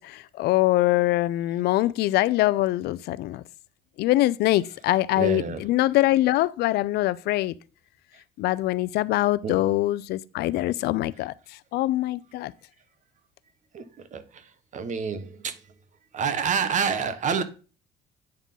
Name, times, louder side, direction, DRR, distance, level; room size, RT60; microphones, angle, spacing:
voice 1, 0.0-3.4 4.0-7.5 8.4-11.3 11.7-12.5, left 16 dB, 75° left, 0.4 m, -23 dB
voice 2, 5.2-5.6 9.4-9.6 13.7-13.8 14.1-14.2 14.7-15.5 16.1-17.4, right 6 dB, 45° right, 1.0 m, -27 dB
8.8 x 3.7 x 5.4 m
cardioid pair, 110°, 17 cm